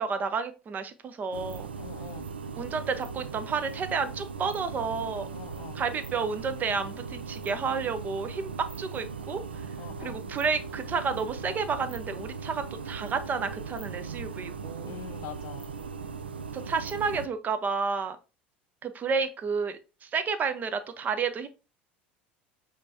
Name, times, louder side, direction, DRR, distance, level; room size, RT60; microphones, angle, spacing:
voice 1, 0.0-1.7 2.6-5.3 5.7-8.5 8.8-9.7 10.0-14.9 16.5-18.2 18.8-21.5, right 5 dB, 30° right, 0.7 m, -31 dB
sound 1, 1.3-17.3, right 5 dB, 80° right, 0.4 m, -39 dB
voice 2, 1.8-2.3 5.3-5.8 9.8-10.2 14.9-15.7, left 11 dB, 55° left, 0.5 m, -43 dB
5.2 x 3.5 x 2.7 m
figure-of-eight pair, 70°, 6 cm